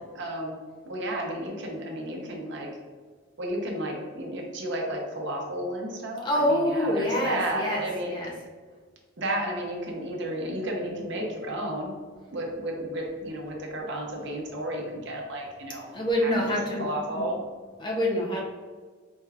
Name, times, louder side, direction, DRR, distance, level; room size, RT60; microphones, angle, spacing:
voice 1, 0.1-0.5 0.8-2.7 3.4-8.1 9.2-12.0 12.3-15.9 16.2-17.4, right 1 dB, 55° right, 0 dB, 0.7 m, -32 dB
voice 2, 6.2-8.3 15.9-17.3 17.8-18.4, left 1 dB, 20° left, -3 dB, 0.6 m, -26 dB
4.3 x 2.3 x 3.4 m, 1.5 s
head